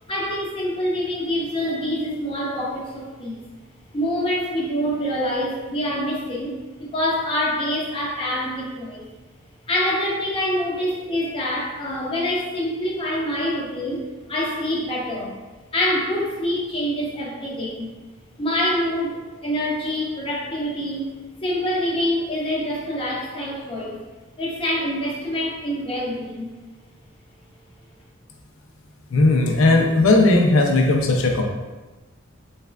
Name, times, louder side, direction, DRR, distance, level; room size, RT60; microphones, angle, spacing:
voice 1, 0.0-3.4 3.9-9.1 9.7-15.4 15.7-17.9 18.4-21.1 21.4-24.0 24.4-26.5, equal, 25° left, -5 dB, 0.6 m, -26 dB
voice 2, 29.1-31.4, left 2 dB, 80° left, 2 dB, 0.5 m, -17 dB
3.4 x 3.2 x 2.2 m, 1.2 s
head